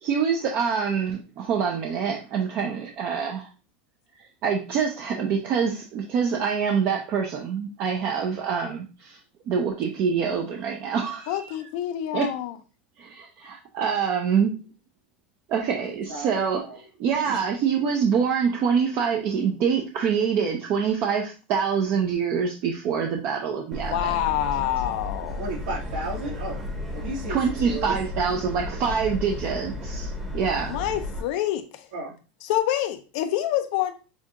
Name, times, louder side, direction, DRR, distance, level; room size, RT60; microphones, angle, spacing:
voice 1, 0.0-3.5 4.4-9.2 9.5-11.5 12.1-12.3 13.0-14.6 15.5-24.1 27.3-30.8, right 6 dB, 40° right, 2 dB, 0.6 m, -25 dB
voice 2, 11.3-12.5 23.9-25.5 30.7-31.9 32.4-33.9, left 12 dB, 60° left, 8 dB, 0.5 m, -27 dB
voice 3, 16.1-16.8 17.3-17.4 25.4-26.6 26.9-27.4 27.6-28.0 31.9-32.1, right 2 dB, 75° right, -2 dB, 1.6 m, -33 dB
Subway metro underground, 23.7-31.2, left 2 dB, 5° right, 0.9 m, -33 dB
6.9 x 2.3 x 2.9 m, 0.33 s
supercardioid pair, 165°, 5 cm